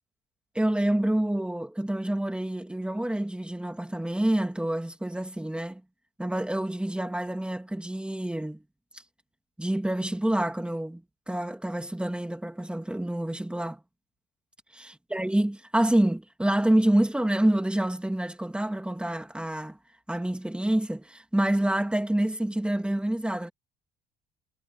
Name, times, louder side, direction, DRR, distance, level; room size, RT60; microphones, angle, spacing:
voice 1, 0.5-5.8 6.2-8.6 9.6-11.0 11.3-13.8 14.8-19.8 20.1-23.5, right 1 dB, 5° right, 2.6 m, -27 dB
cardioid pair, 110°, 17 cm